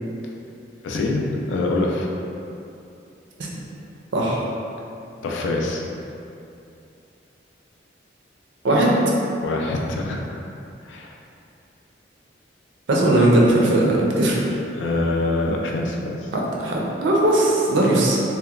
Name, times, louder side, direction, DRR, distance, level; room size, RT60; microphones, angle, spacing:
voice 1, 0.8-2.1 5.2-5.8 9.4-10.4 10.8-11.2 14.7-16.3, left 2 dB, 90° left, 0 dB, 0.3 m, -25 dB
voice 2, 4.1-4.4 8.6-9.0 12.9-14.4 16.3-18.2, right 1 dB, 80° right, -3 dB, 0.5 m, -18 dB
2.8 x 2.1 x 2.4 m, 2.7 s
head